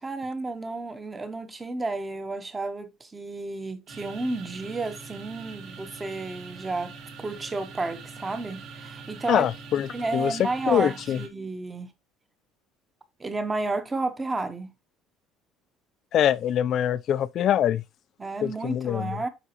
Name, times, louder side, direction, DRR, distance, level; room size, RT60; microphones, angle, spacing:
voice 1, 0.0-6.9 7.2-9.5 9.9-11.9 13.2-14.7 18.2-19.3, right 3 dB, 15° right, 0.9 m, -31 dB
sound 1, 3.9-11.3, right 5 dB, 55° right, 1.7 m, -43 dB
voice 2, 9.3-10.4 10.7-11.2 16.1-17.8 18.4-19.2, left 10 dB, 45° left, 0.4 m, -24 dB
8.2 x 5.0 x 2.9 m
cardioid pair, 155°, 0 cm